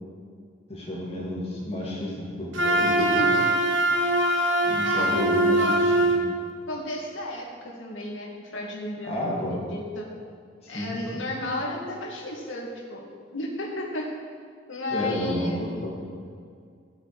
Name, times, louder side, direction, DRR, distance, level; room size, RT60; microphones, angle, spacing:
voice 1, 0.7-3.3 4.6-6.2 9.0-9.6 10.6-11.3 14.9-16.0, left 1 dB, 30° left, -5 dB, 2.7 m, -31 dB
Wind instrument woodwind instrument, 2.5-6.3, right 1 dB, 80° right, 1.2 m, -22 dB
voice 2, 3.0-3.4 4.8-5.3 5.6-5.7 6.7-10.0 10.7-14.1 14.7-15.6, left 1 dB, 80° left, -2 dB, 2.2 m, -33 dB
15.0 x 6.7 x 4.9 m, 2.2 s
head